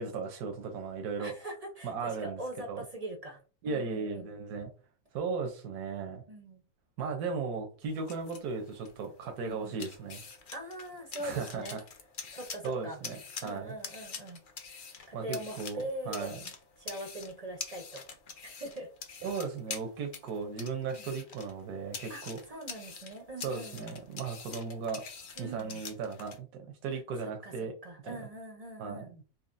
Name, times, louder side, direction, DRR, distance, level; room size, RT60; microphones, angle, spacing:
voice 1, 0.0-1.3 1.8-2.4 2.7-2.8 3.6-4.7 5.1-6.2 7.0-10.2 11.2-11.8 12.3-12.4 12.6-13.2 13.4-13.7 15.1-16.4 19.2-22.4 23.4-25.0 25.4-27.7 28.1-28.2 28.8-29.2, right 5 dB, 85° right, 3 dB, 1.2 m, -36 dB
voice 2, 1.2-4.3 6.3-6.6 9.4-9.7 10.5-11.8 12.3-13.0 13.4-14.4 15.1-16.4 16.8-18.0 18.4-18.9 20.9-21.1 22.1-23.9 25.4-25.8 26.9-27.5 27.8-29.1, right 1 dB, 45° right, 2 dB, 0.5 m, -42 dB
sound 1, 7.8-26.4, left 5 dB, 60° left, 0.5 m, -46 dB
4.1 x 2.9 x 2.5 m, 0.37 s
omnidirectional pair, 1.6 m